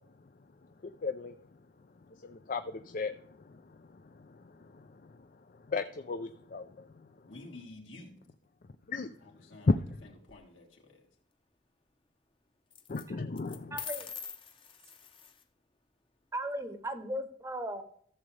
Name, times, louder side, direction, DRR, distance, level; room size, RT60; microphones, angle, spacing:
voice 1, 1.0-1.3 2.5-2.6 2.9-3.1 5.7-6.6 8.9-9.1 9.7-9.8 12.9-13.8, left 3 dB, 45° left, 8 dB, 0.5 m, -31 dB
voice 2, 7.3-8.1 9.2-10.8, left 2 dB, 80° left, 0 dB, 3.1 m, -50 dB
sound 1, 9.8-10.4 12.7-13.0 13.4-15.4, left 7 dB, 25° left, 0.8 m, -44 dB
voice 3, 13.7-14.1 16.3-17.8, right 1 dB, 15° right, 8 dB, 0.9 m, -36 dB
14.5 x 7.4 x 3.3 m, 0.63 s
head